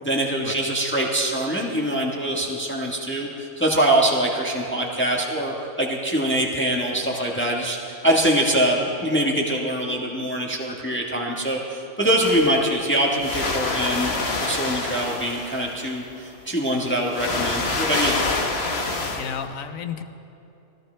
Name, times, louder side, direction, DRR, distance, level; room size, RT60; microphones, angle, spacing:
voice 1, 0.0-7.8 8.0-14.1 14.4-18.2, right 1 dB, 10° left, -2 dB, 1.3 m, -23 dB
sound 1, 12.2-12.8 13.2-15.9 16.8-19.3, left 3 dB, 50° left, 1.5 m, -27 dB
voice 2, 19.1-20.0, left 7 dB, 80° left, 9 dB, 1.2 m, -32 dB
24.0 x 15.0 x 3.3 m, 2.8 s
omnidirectional pair, 1.4 m